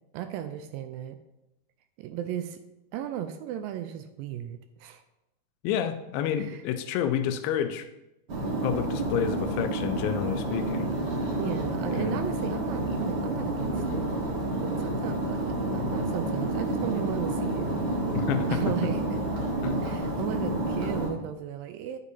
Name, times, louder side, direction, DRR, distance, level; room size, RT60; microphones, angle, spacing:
voice 1, 0.1-1.2 2.0-2.6 2.9-5.0 6.4-6.6 11.3-14.1 14.6-17.7 18.5-19.0 19.8-22.0, right 10 dB, 80° right, 9 dB, 2.2 m, -35 dB
voice 2, 5.6-7.9 8.6-10.9 11.9-12.2 18.1-18.6 19.6-19.8, left 9 dB, 80° left, 9 dB, 2.3 m, -29 dB
sound 1, 8.3-21.1, right 1 dB, 55° right, 1.2 m, -29 dB
9.5 x 8.2 x 2.7 m, 0.91 s
omnidirectional pair, 4.2 m